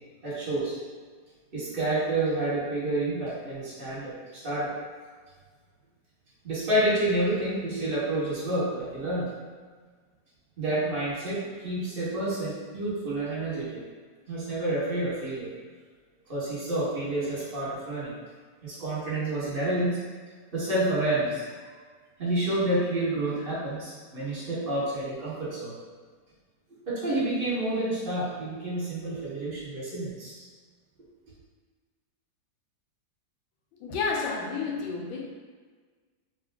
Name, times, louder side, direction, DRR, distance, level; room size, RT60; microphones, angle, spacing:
voice 1, 0.2-0.7 1.5-4.7 6.4-9.3 10.6-13.8 14.3-15.5 16.3-18.1 18.6-20.0 20.5-21.4 22.2-25.7 26.9-30.5, right 1 dB, 35° right, -8 dB, 1.3 m, -29 dB
voice 2, 33.8-35.3, left 4 dB, 90° left, -1 dB, 1.4 m, -30 dB
3.4 x 2.2 x 3.4 m, 1.5 s
omnidirectional pair, 2.1 m